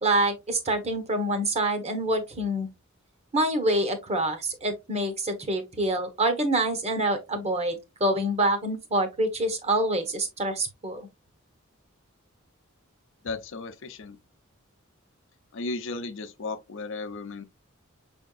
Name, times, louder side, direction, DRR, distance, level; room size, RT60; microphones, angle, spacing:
voice 1, 0.0-2.7 3.3-11.1, right 1 dB, 30° right, 1.0 m, -26 dB
voice 2, 13.2-14.2 15.5-17.4, left 3 dB, 65° left, 0.6 m, -35 dB
6.2 x 3.5 x 2.3 m
head